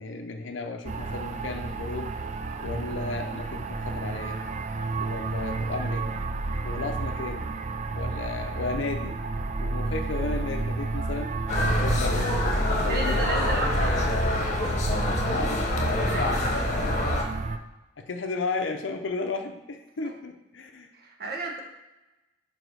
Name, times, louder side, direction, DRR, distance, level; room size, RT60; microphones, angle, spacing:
voice 1, 0.0-2.1 2.6-4.4 5.0-6.1 6.6-7.5 7.9-9.2 9.6-11.3 11.7-13.2 13.7-14.3 15.3-15.7 18.0-20.9, left 3 dB, 90° left, 5 dB, 0.6 m, -34 dB
sound 1, 0.9-17.6, right 3 dB, 40° right, 0.4 m, -31 dB
sound 2, 11.5-17.2, left 2 dB, 40° left, 1.0 m, -27 dB
voice 2, 12.8-13.9 16.0-16.7 20.0-20.1 20.9-21.6, right 2 dB, 55° right, 0 dB, 1.1 m, -33 dB
5.1 x 4.3 x 6.1 m, 1.0 s
head